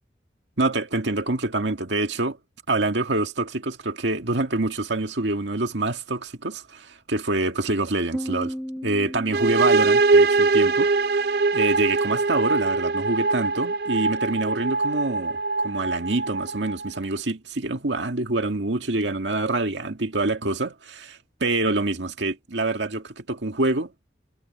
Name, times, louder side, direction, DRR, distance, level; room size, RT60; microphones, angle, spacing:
voice 1, 0.6-2.4 2.7-8.5 8.8-15.4 15.6-23.9, right 2 dB, 85° right, 2.0 m, -26 dB
Piano, 8.1-11.6, equal, 5° left, 0.5 m, -37 dB
sound 1, 9.3-17.0, right 3 dB, 60° right, 0.5 m, -22 dB
head